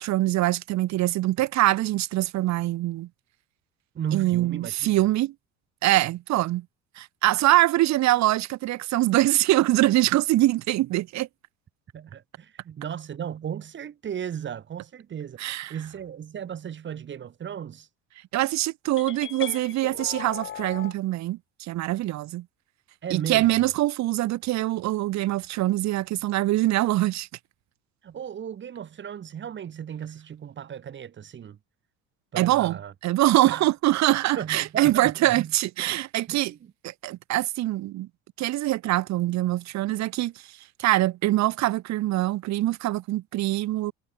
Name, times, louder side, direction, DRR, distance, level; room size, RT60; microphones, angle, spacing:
voice 1, 0.0-3.1 4.1-5.3 5.8-6.6 7.0-11.3 15.4-15.7 18.3-22.4 23.1-27.3 32.4-36.5 36.8-38.1 38.4-40.3 40.8-43.9, right 16 dB, 55° right, 1.6 m, -24 dB
voice 2, 3.9-5.0 11.9-15.4 15.7-17.9 23.0-23.7 28.0-31.6 32.3-32.9 33.4-33.6 34.3-35.5 36.3-36.7, right 9 dB, 35° right, 3.2 m, -35 dB
sound 1, 19.0-20.9, left 10 dB, 35° left, 1.7 m, -38 dB
cardioid pair, 140°, 34 cm